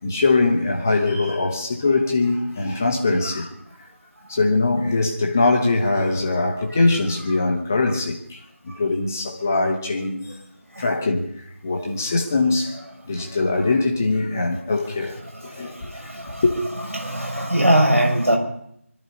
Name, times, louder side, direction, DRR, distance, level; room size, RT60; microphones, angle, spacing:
voice 1, 0.0-3.5 4.3-10.4 10.8-11.3 11.6-12.8 13.1-15.9 16.4-16.5, left 3 dB, 10° left, 0.9 m, -22 dB
voice 2, 15.3-16.4 16.9-18.4, right 1 dB, 75° right, 7.0 m, -22 dB
25.5 x 12.5 x 4.2 m
figure-of-eight pair, 170°, 8 cm